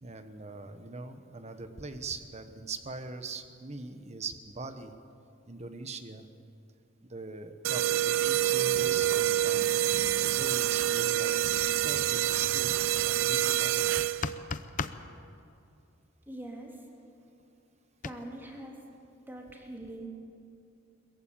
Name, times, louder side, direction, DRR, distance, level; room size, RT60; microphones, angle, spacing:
voice 1, 0.0-4.9 5.5-6.3 7.0-9.8 10.2-12.7 13.0-13.9, right 3 dB, 35° right, 8 dB, 1.2 m, -42 dB
sound 1, 7.6-14.4, right 12 dB, 75° right, 0.5 m, -27 dB
sound 2, 14.0-15.0 18.0-18.1, left 4 dB, 40° left, 0.7 m, -34 dB
voice 2, 16.3-16.9 18.0-18.8 19.3-20.1, right 1 dB, 10° right, -1 dB, 3.4 m, -43 dB
22.0 x 15.0 x 8.8 m, 2.6 s
head